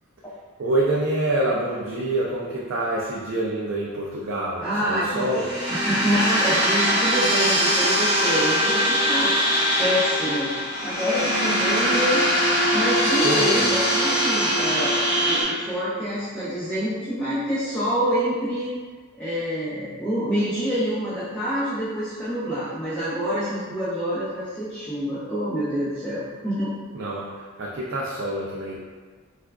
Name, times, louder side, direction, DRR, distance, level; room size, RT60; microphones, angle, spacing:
voice 1, 0.6-5.5 13.2-13.7 26.9-28.8, right 1 dB, 55° right, -4 dB, 0.4 m, -26 dB
voice 2, 4.6-5.3 5.7-9.3 9.8-10.5 10.8-12.2 12.7-18.7 19.2-26.7, equal, 10° left, -14 dB, 0.7 m, -26 dB
sound 1, 5.2-15.4, equal, 20° right, 1.3 m, -22 dB
4.4 x 2.4 x 2.3 m, 1.5 s
head